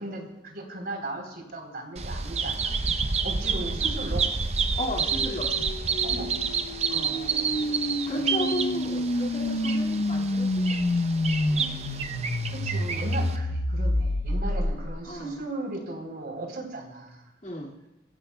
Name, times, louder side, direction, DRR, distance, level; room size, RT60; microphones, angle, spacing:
voice 1, 0.0-2.7 3.2-4.3 6.0-6.3 6.9-7.7 8.1-8.7 11.5-11.8 12.5-17.2, right 2 dB, 55° right, 1 dB, 3.6 m, -37 dB
Bird vocalization bird call bird song, 2.0-13.4, right 5 dB, 35° right, 0.7 m, -29 dB
voice 2, 4.8-5.5 6.9-7.2 8.1-10.6 11.5-11.6 15.1-15.4 17.4-17.7, equal, 40° left, -2 dB, 2.2 m, -34 dB
sound 1, 5.1-15.1, left 1 dB, 85° left, 1.0 m, -28 dB
24.5 x 16.5 x 2.3 m, 1.0 s
head